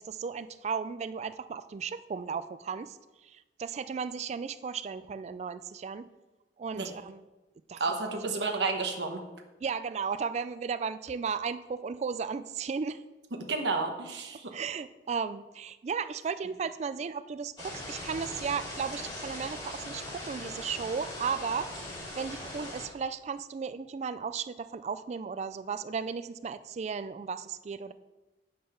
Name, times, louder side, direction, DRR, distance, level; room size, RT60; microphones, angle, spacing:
voice 1, 0.0-6.1 6.6-7.2 7.7-7.8 9.6-13.0 14.5-21.9 22.1-27.9, right 6 dB, 40° right, 13 dB, 0.3 m, -35 dB
voice 2, 7.8-9.2 13.5-14.5, right 3 dB, 80° right, 4 dB, 1.1 m, -31 dB
sound 1, 17.6-22.9, left 1 dB, 25° left, 2.5 m, -40 dB
8.6 x 5.5 x 5.7 m, 1.1 s
head